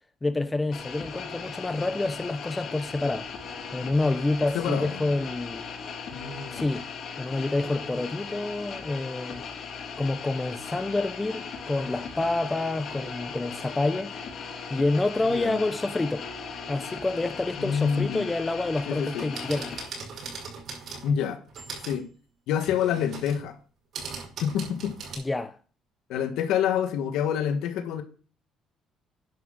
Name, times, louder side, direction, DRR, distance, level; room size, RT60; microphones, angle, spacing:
voice 1, 0.2-3.3 3.7-5.7 6.5-6.9 7.2-9.5 10.0-14.1 14.7-16.3 16.7-19.8 25.2-25.6, left 2 dB, 15° left, 0.8 m, -28 dB
sound 1, 0.7-19.9, left 5 dB, 55° left, 3.2 m, -38 dB
voice 2, 4.5-4.9 6.1-6.7 15.2-15.6 17.6-18.2 18.9-19.3 21.0-21.4 21.9-22.0 22.5-23.6 24.4-24.9 26.1-28.0, left 8 dB, 85° left, 1.7 m, -27 dB
sound 2, 19.0-21.2 21.5-22.0 22.6-23.4 23.9-25.2, right 4 dB, 55° right, 6.0 m, -39 dB
10.5 x 6.0 x 6.5 m
cardioid pair, 105°, 0 cm